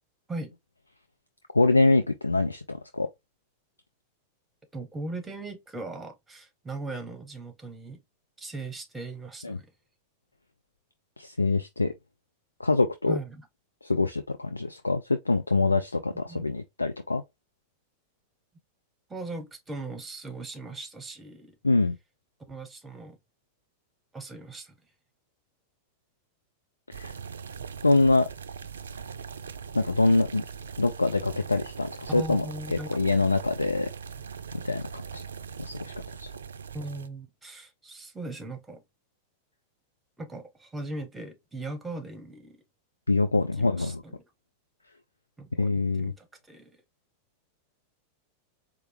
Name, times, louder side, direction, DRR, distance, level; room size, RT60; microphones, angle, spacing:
voice 1, 1.5-3.1 9.4-9.6 11.2-11.9 12.6-13.2 13.8-17.2 21.6-22.0 26.9-27.1 27.8-28.3 29.7-30.4 30.8-33.9 34.5-35.2 35.6-35.9 36.2-36.3 43.1-44.0 45.6-46.1, left 3 dB, 80° left, 0.3 m, -25 dB
voice 2, 4.7-8.0 8.4-9.7 13.1-13.5 16.3-16.4 19.1-21.6 22.5-23.2 24.1-24.8 32.1-33.0 36.7-38.8 40.2-42.6 43.6-44.2 45.4-46.8, right 2 dB, 10° right, 0.9 m, -39 dB
sound 1, 26.9-37.1, right 6 dB, 70° right, 0.4 m, -41 dB
4.5 x 2.4 x 3.1 m
figure-of-eight pair, 90°, 0 cm